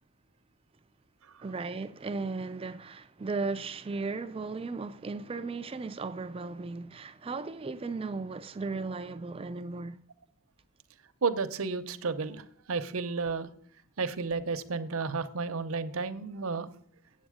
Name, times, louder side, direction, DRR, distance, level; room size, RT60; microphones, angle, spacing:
voice 1, 1.4-10.0, right 3 dB, 25° right, 0.4 m, -36 dB
voice 2, 11.2-13.5 14.0-16.7, right 4 dB, 75° right, 0.7 m, -32 dB
8.4 x 7.9 x 4.9 m
head